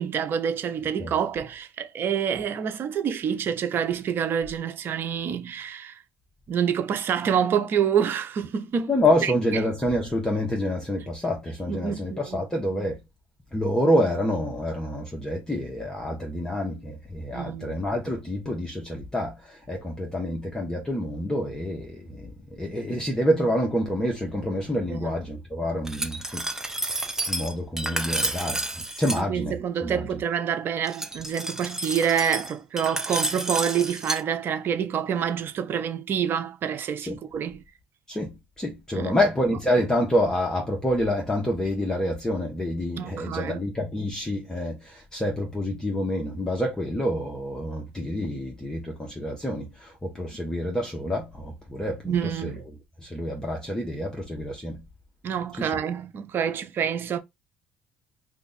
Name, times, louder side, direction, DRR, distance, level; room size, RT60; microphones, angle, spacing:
voice 1, 0.0-6.0 6.5-8.9 9.2-9.6 11.7-12.4 17.3-17.8 24.9-25.1 29.2-37.6 38.9-39.2 43.0-43.7 52.0-52.6 55.2-57.2, right 8 dB, 55° right, 0.7 m, -27 dB
voice 2, 8.9-13.0 13.5-26.5 27.3-28.6 29.0-30.1 37.0-37.2 38.1-52.5 53.0-54.8 55.6-55.7, left 1 dB, 15° left, 1.0 m, -27 dB
Glass, 25.9-29.2 30.9-34.2, right 1 dB, 10° right, 0.7 m, -30 dB
2.5 x 2.4 x 4.0 m
supercardioid pair, 75°, 5 cm